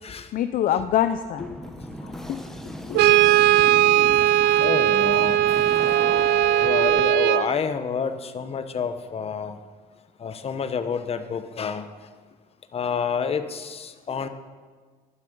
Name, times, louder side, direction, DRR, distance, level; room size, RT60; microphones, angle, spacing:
voice 1, 0.3-1.4 2.3-2.4 2.6-4.2, left 10 dB, 55° left, 10 dB, 0.5 m, -27 dB
sound 1, 1.4-7.0, equal, 5° left, 1.3 m, -36 dB
Brass instrument, 2.9-7.5, right 14 dB, 85° right, 0.4 m, -18 dB
voice 2, 4.6-5.5 6.6-9.6 10.2-11.9 12.7-14.3, left 6 dB, 35° left, 10 dB, 1.0 m, -28 dB
11.5 x 11.5 x 5.4 m, 1.5 s
cardioid pair, 110°, 17 cm